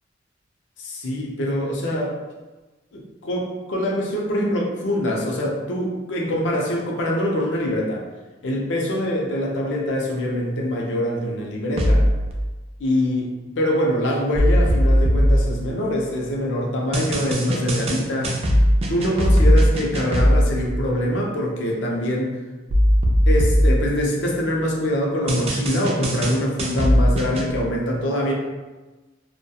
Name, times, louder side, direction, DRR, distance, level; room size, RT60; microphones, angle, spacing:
voice 1, 0.8-2.1 2.9-8.0 8.4-12.0 12.8-18.4 18.9-22.3 23.3-28.3, equal, 70° left, -1 dB, 0.5 m, -24 dB
sound 1, 11.8-12.3 14.4-16.2 16.9-20.7 22.7-24.6 25.3-27.5, equal, 30° right, 0.3 m, -19 dB
2.2 x 2.1 x 2.7 m, 1.2 s
head